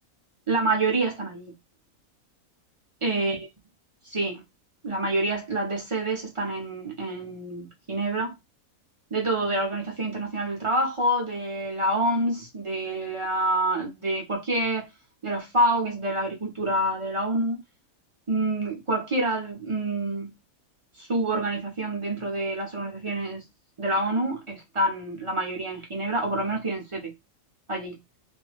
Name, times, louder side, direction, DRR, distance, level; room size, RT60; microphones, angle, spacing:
voice 1, 0.5-1.6 3.0-3.4 4.1-4.4 4.8-8.4 9.1-14.9 15.2-17.6 18.3-20.3 21.0-23.4 23.8-27.1 27.7-28.0, right 1 dB, 35° right, 0.5 m, -27 dB
2.4 x 2.1 x 3.2 m
omnidirectional pair, 1.4 m